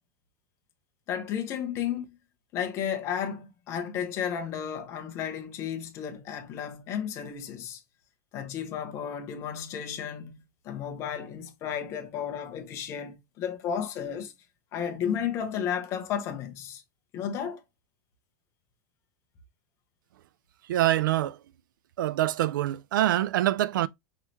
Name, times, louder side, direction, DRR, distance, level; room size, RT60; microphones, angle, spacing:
voice 1, 1.1-2.2 2.5-7.8 8.3-10.4 10.6-14.3 14.7-16.8 17.1-17.6, left 8 dB, 25° left, 0.9 m, -33 dB
voice 2, 20.7-21.4 22.0-23.9, right 14 dB, 85° right, 0.4 m, -25 dB
5.6 x 3.1 x 2.8 m
supercardioid pair, 170°, 11 cm